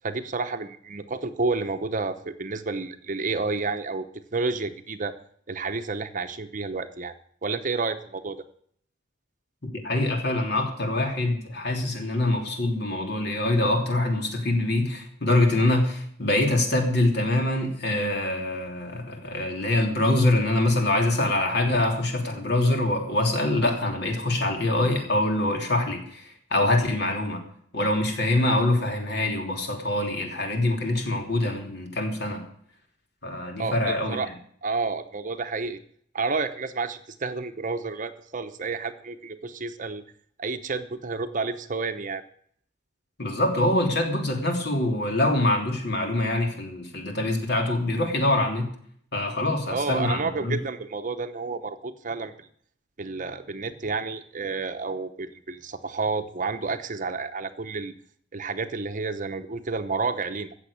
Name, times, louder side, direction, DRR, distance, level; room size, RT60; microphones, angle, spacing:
voice 1, 0.0-4.1 4.3-5.2 5.5-7.1 7.4-8.4 33.6-34.3 34.6-35.8 36.1-40.0 40.4-42.2 49.7-52.5 53.0-57.9 58.3-60.5, right 4 dB, 40° right, 9 dB, 0.9 m, -30 dB
voice 2, 9.8-27.4 27.7-32.4 33.2-34.2 43.2-48.7 49.1-50.5, left 1 dB, 55° left, 3 dB, 3.2 m, -24 dB
14.5 x 7.7 x 8.7 m, 0.63 s
head